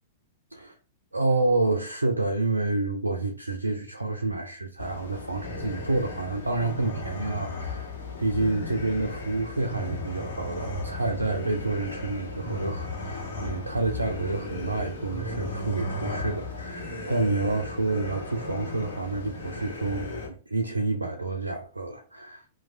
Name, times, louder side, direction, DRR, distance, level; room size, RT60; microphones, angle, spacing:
voice 1, 1.1-7.9 8.2-22.5, right 2 dB, 80° right, 0.3 m, -29 dB
sound 1, 4.8-20.3, left 1 dB, 60° left, 0.8 m, -35 dB
3.0 x 2.1 x 2.5 m
figure-of-eight pair, 100°, 0 cm